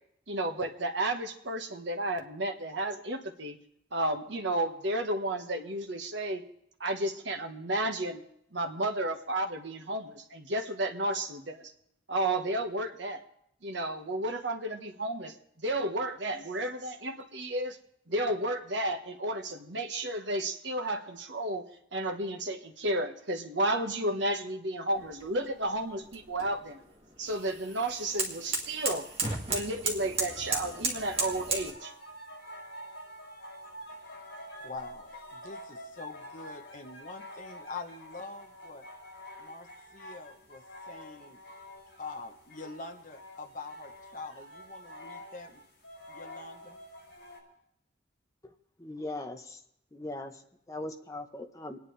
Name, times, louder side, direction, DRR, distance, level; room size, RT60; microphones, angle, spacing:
voice 1, 0.3-3.6 3.9-6.4 6.8-8.2 8.5-11.7 12.1-13.2 13.6-17.8 18.1-21.6 21.9-26.8 27.2-29.1 29.5-31.9, right 1 dB, 70° right, 3 dB, 1.4 m, -32 dB
sound 1, 24.9-31.7, right 3 dB, 30° right, 2.0 m, -35 dB
sound 2, 30.2-47.4, equal, 70° left, 5.9 m, -47 dB
voice 2, 34.6-38.9 39.4-41.4 42.0-45.6 46.1-46.8, left 3 dB, 45° left, 4 dB, 0.9 m, -45 dB
voice 3, 48.8-49.6 49.9-50.3 50.7-51.8, left 2 dB, 15° left, 4 dB, 0.9 m, -39 dB
29.0 x 9.9 x 3.3 m, 0.76 s
head